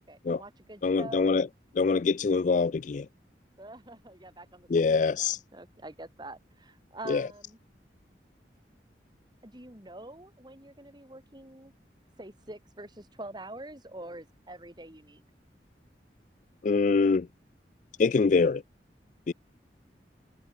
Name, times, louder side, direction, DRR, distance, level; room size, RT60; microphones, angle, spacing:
voice 1, 0.0-1.5 3.6-7.6 9.4-11.7 12.2-15.2, right 2 dB, 25° right, 3.9 m, -45 dB
voice 2, 0.8-1.5 1.8-3.1 4.7-5.4 7.1-7.3 16.6-17.3 18.0-18.6 19.3-19.4, left 4 dB, 45° left, 0.4 m, -24 dB
head